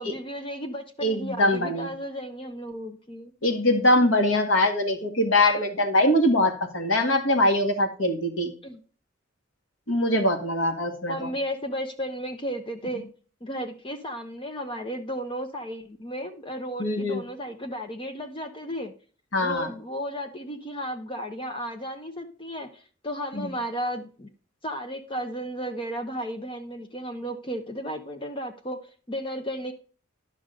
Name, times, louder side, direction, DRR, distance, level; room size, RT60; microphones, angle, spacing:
voice 1, 0.0-3.3 8.6-8.8 11.1-13.1 13.4-18.9 19.4-24.3 24.6-28.8 29.1-29.7, equal, 25° left, 7 dB, 0.9 m, -34 dB
voice 2, 1.0-1.9 3.4-8.5 9.9-11.3 16.8-17.2 19.3-19.7 23.3-23.6, left 1 dB, 70° left, 6 dB, 1.9 m, -23 dB
11.5 x 6.2 x 3.8 m, 0.40 s
head